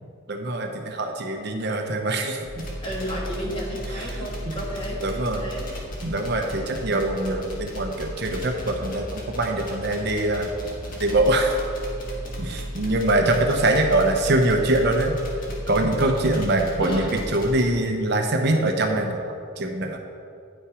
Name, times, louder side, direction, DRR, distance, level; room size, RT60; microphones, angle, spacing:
voice 1, 0.3-2.7 3.9-4.3 5.0-5.5 6.0-10.5 11.0-11.6 12.4-15.2 15.7-19.2 19.6-20.0, right 1 dB, 50° right, 4 dB, 0.7 m, -23 dB
sound 1, 2.5-17.7, equal, 40° left, 1.5 m, -35 dB
voice 2, 2.8-5.0 5.3-5.7 16.8-17.1, equal, 25° left, -3 dB, 1.4 m, -32 dB
9.3 x 5.7 x 4.9 m, 2.4 s
head